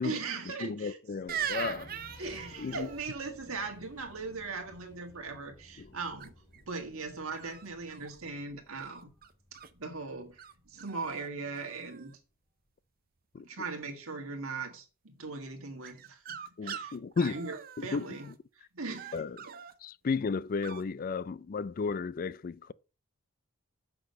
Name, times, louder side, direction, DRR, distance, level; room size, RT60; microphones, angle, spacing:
voice 1, 0.0-1.2 2.2-6.3 6.7-9.1 9.7-10.4 10.7-12.2 13.4-16.4 16.6-19.6, right 4 dB, 70° right, 1.8 m, -39 dB
voice 2, 0.6-1.9 2.6-2.9 5.8-5.9 13.3-13.5 16.6-17.4 17.8-18.2 19.1-19.4 19.8-22.7, left 4 dB, 40° left, 0.3 m, -33 dB
Accelerating revving vroom, 1.1-12.0, left 1 dB, 20° left, 2.3 m, -57 dB
sound 1, 1.3-3.0 6.2-6.6 7.3-8.2 8.8-9.7 10.4-10.5 10.8-11.3 11.5-12.1 15.8-18.3 18.9-19.7 20.6-20.8, right 8 dB, 40° right, 0.6 m, -41 dB
7.6 x 6.0 x 5.2 m
head